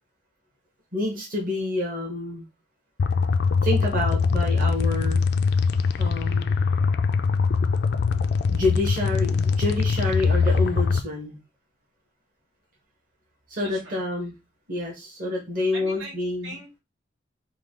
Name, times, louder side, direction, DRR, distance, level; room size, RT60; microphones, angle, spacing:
voice 1, 0.9-2.4 3.6-5.2 6.0-6.5 8.5-11.4 13.5-14.3 14.7-16.6, left 2 dB, 45° right, -2 dB, 1.2 m, -28 dB
sound 1, 3.0-11.0, left 5 dB, 55° left, 0.3 m, -22 dB
voice 2, 13.6-14.0 15.7-16.1 16.4-16.8, right 1 dB, 85° right, -3 dB, 2.1 m, -39 dB
4.6 x 2.3 x 3.7 m, 0.24 s
head